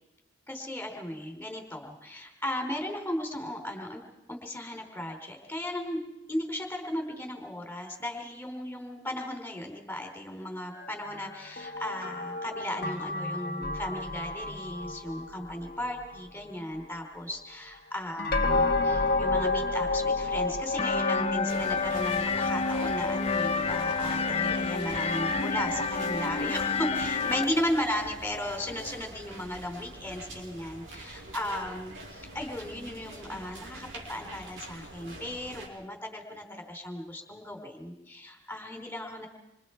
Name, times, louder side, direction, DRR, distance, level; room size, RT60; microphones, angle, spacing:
voice 1, 0.5-4.0 4.3-6.0 6.3-39.3, left 1 dB, 10° left, 3 dB, 4.0 m, -36 dB
sound 1, 10.7-16.4 18.2-29.0, left 3 dB, 50° left, 1.5 m, -32 dB
sound 2, 20.8-27.4, left 4 dB, 30° left, 0.8 m, -29 dB
sound 3, 21.5-35.7, right 1 dB, 80° right, 6.0 m, -44 dB
27.5 x 26.0 x 4.6 m, 0.94 s
head